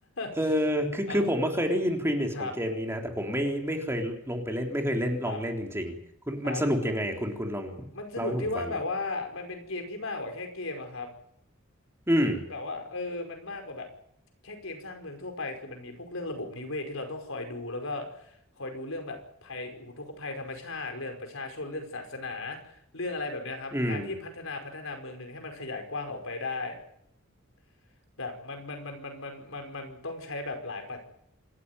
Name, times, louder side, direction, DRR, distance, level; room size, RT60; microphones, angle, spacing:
voice 1, 0.4-6.0 6.3-7.9 8.2-8.7 12.1-12.4 23.7-24.1, equal, 10° right, 2 dB, 3.6 m, -28 dB
voice 2, 7.9-11.1 12.5-13.9 14.4-26.8 28.2-31.0, left 2 dB, 70° left, 5 dB, 5.2 m, -36 dB
27.0 x 13.5 x 9.8 m, 0.73 s
head